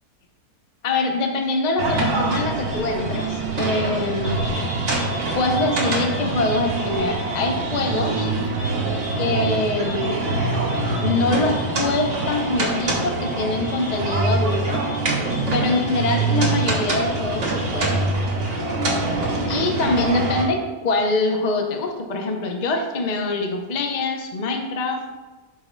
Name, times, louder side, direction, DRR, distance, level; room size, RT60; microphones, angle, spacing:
voice 1, 0.8-4.5 5.3-8.3 9.2-10.3 11.0-14.8 15.5-18.0 19.5-25.0, left 2 dB, 40° left, 3 dB, 0.6 m, -24 dB
sound 1, 1.8-20.5, right 2 dB, 50° right, 1.5 m, -24 dB
11.5 x 4.7 x 2.2 m, 1.2 s
omnidirectional pair, 1.6 m